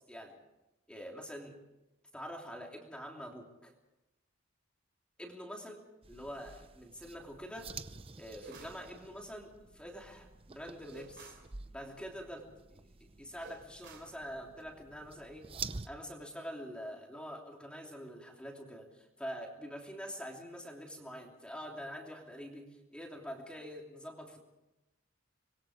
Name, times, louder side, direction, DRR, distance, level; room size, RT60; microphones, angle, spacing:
voice 1, 0.9-1.6 2.1-3.7 5.2-5.8 6.1-7.7 8.2-11.3 11.7-12.8 13.2-15.5 15.8-24.4, equal, 5° left, 0 dB, 3.0 m, -45 dB
sound 1, 6.0-15.9, right 5 dB, 25° right, 0.6 m, -49 dB
sound 2, 8.4-8.9 10.9-11.5 13.4-14.2, right 2 dB, 50° right, 3.2 m, -52 dB
25.5 x 21.5 x 5.0 m, 0.94 s
head